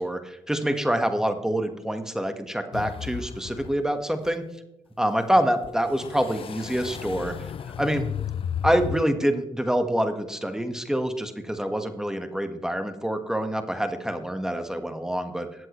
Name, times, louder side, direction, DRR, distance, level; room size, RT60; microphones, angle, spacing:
voice 1, 0.0-4.4 5.0-7.3 7.8-8.0 8.6-15.5, equal, 5° right, 8 dB, 1.4 m, -26 dB
sound 1, 2.7-3.9 4.2-4.3 5.6-9.0, left 8 dB, 50° left, 0.4 m, -34 dB
19.5 x 7.7 x 3.1 m, 0.91 s
cardioid pair, 70°, 12 cm